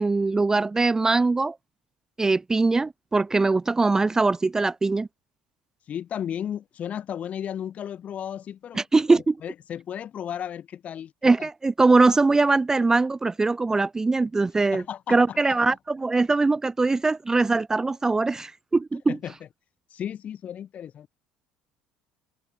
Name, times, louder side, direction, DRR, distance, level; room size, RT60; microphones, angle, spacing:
voice 1, 0.0-1.6 2.2-5.1 8.7-9.4 11.2-14.8 15.1-19.2, right 3 dB, 15° right, 0.4 m, -22 dB
voice 2, 5.9-8.8 9.4-11.1 11.4-11.5 14.7-15.6 19.1-19.3 19.9-21.1, left 9 dB, 40° left, 1.3 m, -34 dB
open air
figure-of-eight pair, 60°, 4 cm